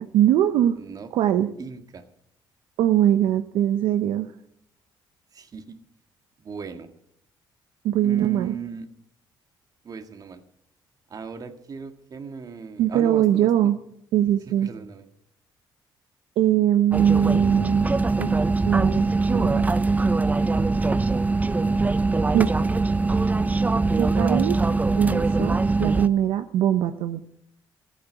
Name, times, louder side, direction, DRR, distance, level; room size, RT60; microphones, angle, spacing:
voice 1, 0.0-0.8 1.1-1.5 2.8-4.3 7.8-8.5 12.8-13.8 14.1-14.7 16.4-17.9 18.2-18.3 18.6-19.0 19.3-19.6 22.3-22.7 24.0-24.6 24.9-27.2, right 11 dB, 85° right, 9 dB, 0.7 m, -21 dB
voice 2, 0.8-1.1 1.6-2.0 5.3-5.8 6.4-6.9 8.0-8.9 9.8-10.4 11.1-13.7 14.6-15.1, right 5 dB, 45° right, 8 dB, 1.8 m, -37 dB
sound 1, 16.9-26.1, right 3 dB, 20° right, 0.7 m, -22 dB
14.5 x 8.6 x 8.0 m, 0.70 s
cardioid pair, 90°, 9 cm